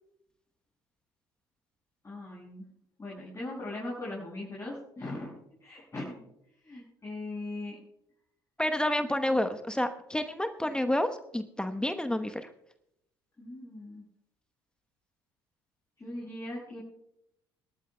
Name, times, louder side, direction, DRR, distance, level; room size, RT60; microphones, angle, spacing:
voice 1, 2.0-2.7 3.0-6.2 6.6-7.8 13.4-14.0 16.0-16.8, left 2 dB, 25° left, -6 dB, 6.5 m, -39 dB
voice 2, 8.6-12.5, left 1 dB, 5° left, 8 dB, 1.0 m, -29 dB
26.0 x 13.5 x 2.3 m, 0.77 s
hypercardioid pair, 60°, 12 cm